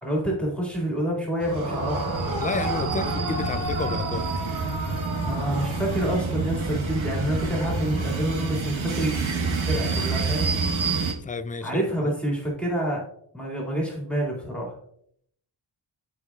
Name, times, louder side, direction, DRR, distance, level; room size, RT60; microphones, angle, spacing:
voice 1, 0.0-2.1 5.1-10.5 11.6-13.1 13.3-14.8, right 1 dB, ahead, -3 dB, 2.2 m, -28 dB
Yell / Screaming, 1.4-6.4, right 2 dB, 40° right, 2.2 m, -32 dB
sound 1, 1.4-11.1, right 4 dB, 75° right, 1.3 m, -28 dB
voice 2, 2.4-4.3 11.2-12.1, left 4 dB, 20° left, 11 dB, 0.4 m, -31 dB
13.0 x 4.7 x 2.4 m, 0.67 s
wide cardioid pair, 120°, 47 cm